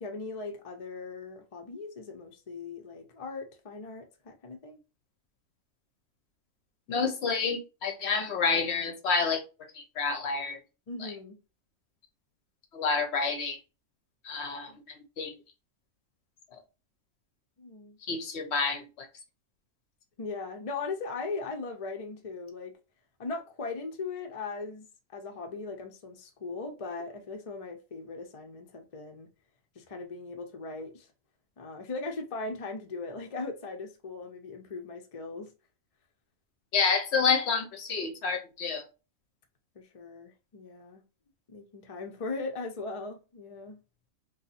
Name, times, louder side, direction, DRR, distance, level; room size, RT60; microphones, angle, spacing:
voice 1, 0.0-4.8 10.9-11.4 14.7-14.8 17.6-18.0 20.2-22.7 23.2-24.9 25.1-29.3 29.8-31.1 31.6-35.5 39.7-41.0 41.5-43.8, left 3 dB, 45° left, 0.4 m, -39 dB
voice 2, 6.9-9.4 9.7-10.6 12.7-13.6 14.2-14.7 15.2-15.3 16.5-16.6 18.1-19.1 36.7-38.8, left 5 dB, 60° left, 0.8 m, -28 dB
2.6 x 2.4 x 4.0 m
omnidirectional pair, 1.4 m